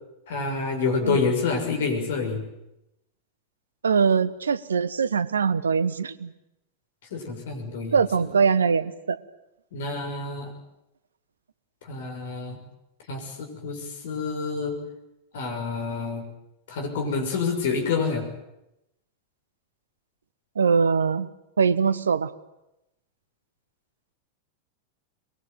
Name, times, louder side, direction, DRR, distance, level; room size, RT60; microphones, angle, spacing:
voice 1, 0.3-2.4 7.1-8.0 9.7-10.5 11.8-12.6 13.1-14.8 15.3-16.2 16.7-18.3, left 4 dB, 55° left, 4 dB, 6.6 m, -28 dB
voice 2, 3.8-6.3 7.9-9.2 20.6-21.3 21.6-22.3, right 6 dB, 70° right, 16 dB, 1.2 m, -22 dB
23.0 x 22.5 x 9.4 m, 0.88 s
figure-of-eight pair, 90°, 0 cm